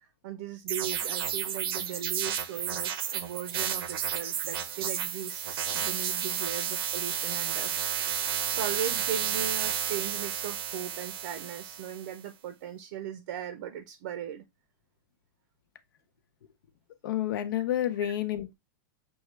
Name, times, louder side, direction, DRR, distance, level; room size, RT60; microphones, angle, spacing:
voice 1, 0.0-7.8 8.1-14.4 18.0-18.1, right 9 dB, 55° right, 0.6 m, -38 dB
sound 1, 0.7-12.1, right 8 dB, 85° right, 0.8 m, -32 dB
voice 2, 17.0-18.5, left 12 dB, 65° left, 0.7 m, -29 dB
6.2 x 2.4 x 3.2 m
supercardioid pair, 170°, 12 cm